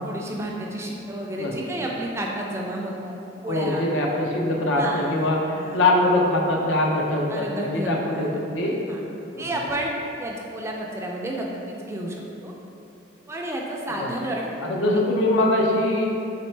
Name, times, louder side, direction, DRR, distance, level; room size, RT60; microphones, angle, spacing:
voice 1, 0.0-3.1 3.4-3.8 4.7-5.3 5.6-5.8 7.3-8.3 8.9-9.0 9.4-9.9 10.2-12.5 13.3-14.5 15.7-15.8, right 1 dB, 15° right, -1 dB, 0.3 m, -31 dB
voice 2, 3.5-7.5 7.7-8.8 9.3-9.4 14.0-14.1 14.6-16.1, left 1 dB, 80° left, -1 dB, 0.6 m, -22 dB
4.3 x 3.2 x 3.2 m, 2.8 s
head